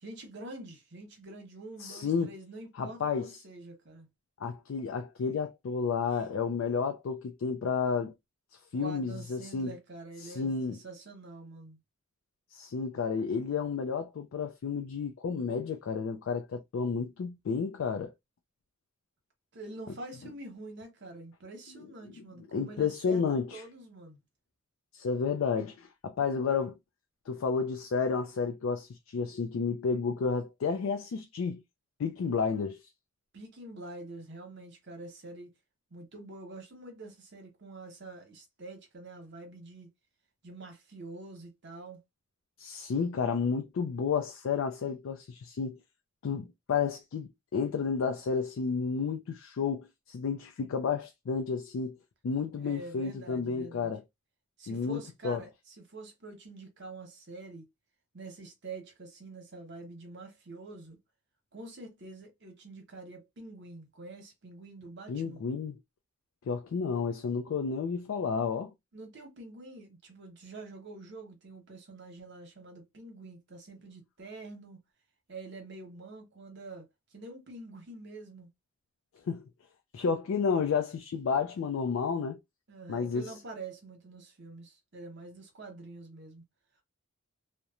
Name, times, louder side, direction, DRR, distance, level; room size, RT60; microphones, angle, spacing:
voice 1, 0.0-4.1 8.7-11.8 19.5-24.2 33.3-35.5 35.9-39.9 40.4-42.0 52.6-53.9 54.6-57.7 58.1-61.0 61.5-65.4 68.9-74.8 75.3-78.5 82.7-86.4, right 2 dB, 55° right, 0.9 m, -46 dB
voice 2, 1.8-2.3 2.8-3.3 4.4-8.1 8.7-9.7 10.2-10.8 12.5-18.1 22.5-23.6 24.9-26.8 27.3-31.6 32.0-32.8 42.6-45.8 46.2-52.0 52.2-54.0 54.7-55.4 65.1-65.7 66.5-68.7 79.3-79.4 79.9-82.4 82.9-83.3, left 5 dB, 65° left, 0.3 m, -31 dB
2.9 x 2.1 x 2.3 m
head